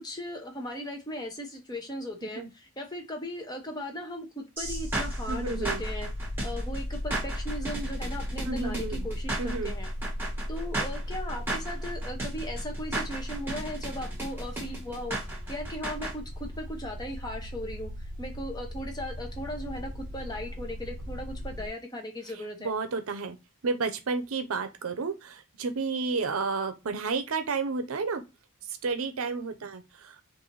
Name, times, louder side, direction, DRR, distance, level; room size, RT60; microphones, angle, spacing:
voice 1, 0.0-6.1 6.4-9.9 10.5-17.9 18.2-22.7, equal, 20° left, 0.7 m, -37 dB
sound 1, 4.6-16.1, right 2 dB, 10° right, 1.2 m, -35 dB
sound 2, 4.6-21.7, left 1 dB, 40° right, 0.7 m, -36 dB
voice 2, 5.3-5.8 8.5-9.1 9.4-9.7 22.6-23.4 23.6-28.2 28.8-30.2, right 4 dB, 75° right, 0.6 m, -31 dB
3.9 x 2.5 x 3.1 m
head